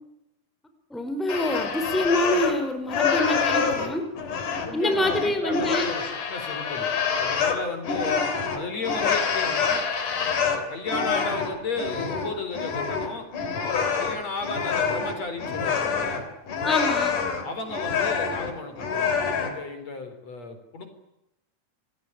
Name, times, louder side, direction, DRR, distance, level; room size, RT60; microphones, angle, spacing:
voice 1, 0.9-4.1 4.7-5.9 16.6-17.2, left 1 dB, ahead, 7 dB, 3.7 m, -26 dB
sound 1, 1.3-2.6 2.9-19.6, left 6 dB, 90° left, 5.0 m, -26 dB
voice 2, 4.7-6.9 7.2-8.2 8.5-9.8 10.4-13.3 14.0-16.3 17.4-20.9, left 3 dB, 55° left, 8 dB, 5.2 m, -34 dB
28.0 x 20.0 x 9.9 m, 0.85 s
omnidirectional pair, 3.5 m